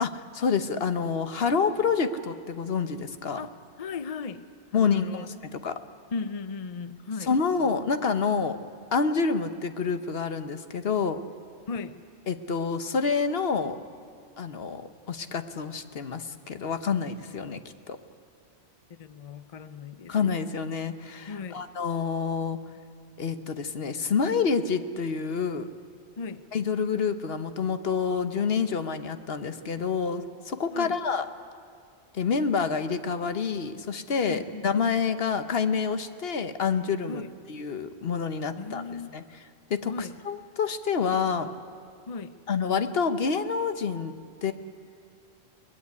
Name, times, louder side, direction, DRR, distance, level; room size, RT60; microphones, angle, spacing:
voice 1, 0.0-3.4 4.7-5.3 5.5-5.8 7.3-8.6 8.9-11.2 12.3-13.8 14.4-17.6 17.9-18.0 20.1-22.6 23.2-25.7 26.5-31.3 32.1-37.2 37.5-38.8 39.1-39.2 39.7-39.9 40.3-41.5 42.5-44.1 44.4-44.5, left 5 dB, 65° left, 10 dB, 1.2 m, -27 dB
voice 2, 3.4-4.4 4.7-5.3 6.1-7.3 7.6-7.7 11.6-12.0 18.9-20.2 21.3-21.6 26.2-26.4 30.7-31.0 34.2-34.7 37.1-37.3 38.6-39.1 39.9-40.2 42.1-42.4, left 4 dB, 40° left, 12 dB, 0.7 m, -37 dB
22.0 x 20.0 x 9.6 m, 2.2 s
omnidirectional pair, 1.1 m